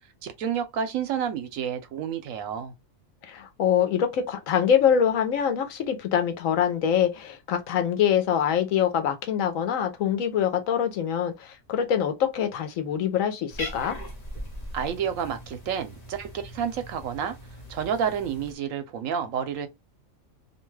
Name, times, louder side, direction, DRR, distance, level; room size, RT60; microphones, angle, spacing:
voice 1, 0.2-2.7 14.7-17.4 17.7-19.7, right 8 dB, 85° right, 1.0 m, -30 dB
voice 2, 3.2-13.9, left 8 dB, 90° left, 1.1 m, -24 dB
Cat, 13.5-18.5, equal, 35° left, 0.7 m, -40 dB
2.7 x 2.2 x 3.2 m
omnidirectional pair, 1.4 m